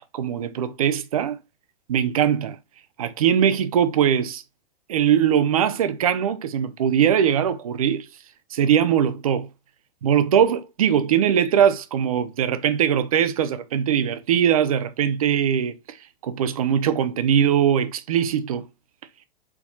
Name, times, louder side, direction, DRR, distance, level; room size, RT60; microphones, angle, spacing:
voice 1, 0.0-1.4 1.9-2.6 3.0-4.4 4.9-8.1 8.5-9.5 10.0-16.0 16.2-18.6, right 9 dB, 40° right, 0.5 m, -21 dB
4.6 x 4.1 x 2.2 m
supercardioid pair, 180°, 29 cm